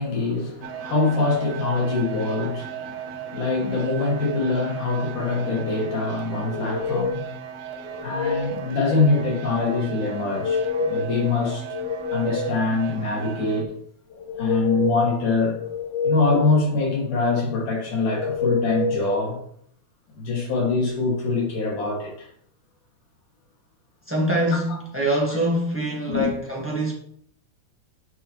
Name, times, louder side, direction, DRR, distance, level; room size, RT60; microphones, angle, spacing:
voice 1, 0.0-7.3 8.0-11.7 12.1-13.8 14.4-15.6 16.0-19.4 20.2-22.3 24.7-24.8 26.1-26.3, left 3 dB, 75° left, 3.9 m, -24 dB
sound 1, 0.6-13.6, right 9 dB, 70° right, 1.7 m, -36 dB
sound 2, 6.4-7.3 7.8-8.6 10.2-11.2 11.6-12.7 14.1-15.1 15.6-16.6 18.2-19.2, left 4 dB, 55° left, 2.0 m, -27 dB
voice 2, 24.1-26.9, right 1 dB, 10° right, 0.7 m, -24 dB
9.4 x 6.0 x 3.2 m
omnidirectional pair, 3.7 m